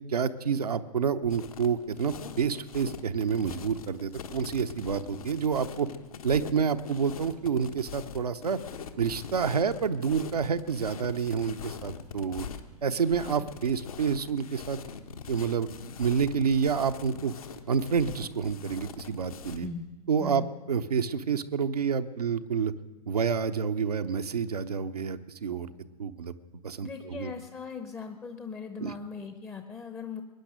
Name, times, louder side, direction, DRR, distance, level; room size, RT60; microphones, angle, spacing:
voice 1, 0.1-5.9 6.2-8.6 9.0-12.5 12.8-14.8 15.3-15.7 16.0-17.3 17.7-19.7 20.1-22.7 23.1-25.7 26.0-26.3 26.6-27.3 28.8-28.9, right 6 dB, 70° right, 9 dB, 0.8 m, -28 dB
sound 1, 1.2-19.7, left 6 dB, 60° left, 1.2 m, -43 dB
voice 2, 26.8-30.2, left 5 dB, 10° left, 7 dB, 0.8 m, -39 dB
22.0 x 9.9 x 6.5 m, 1.1 s
figure-of-eight pair, 105°, 20 cm